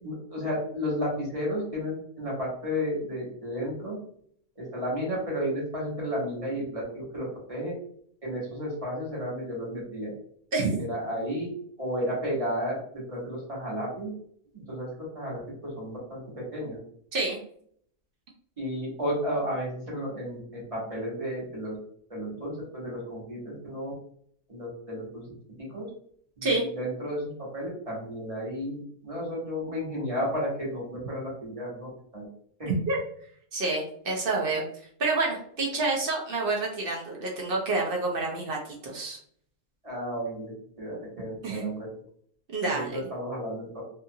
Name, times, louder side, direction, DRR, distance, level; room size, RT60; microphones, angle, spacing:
voice 1, 0.0-3.9 4.6-7.7 8.2-10.1 10.8-11.5 11.8-12.8 13.1-14.1 14.7-14.9 15.1-16.2 16.5-16.8 18.6-21.8 22.1-23.9 24.5-25.2 25.7-25.9 26.4-26.5 26.8-32.3 39.8-40.5 40.8-41.9 42.7-43.8, equal, 25° right, -5 dB, 1.0 m, -32 dB
voice 2, 10.5-10.9 17.1-17.4 26.4-26.7 32.6-33.0 33.5-34.6 35.0-39.2 41.4-41.6 42.5-43.0, right 3 dB, 55° right, -1 dB, 0.6 m, -28 dB
2.8 x 2.4 x 2.6 m, 0.63 s
omnidirectional pair, 1.5 m